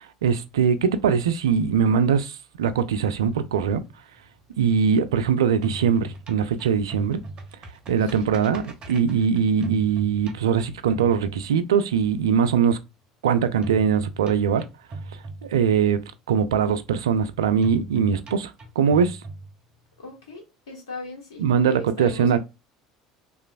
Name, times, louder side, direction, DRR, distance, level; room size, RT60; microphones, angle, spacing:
voice 1, 0.0-3.8 4.6-7.2 7.9-12.8 13.2-14.7 15.4-16.0 16.3-19.2 21.4-22.4, right 7 dB, 80° right, 0.3 m, -22 dB
sound 1, 3.2-5.2 5.5-12.0 13.6-16.0 17.6-20.0, right 2 dB, 40° right, 0.8 m, -38 dB
voice 2, 8.0-8.4 20.0-22.4, left 3 dB, 75° left, 1.1 m, -39 dB
2.9 x 2.4 x 2.3 m
hypercardioid pair, 70°, 2 cm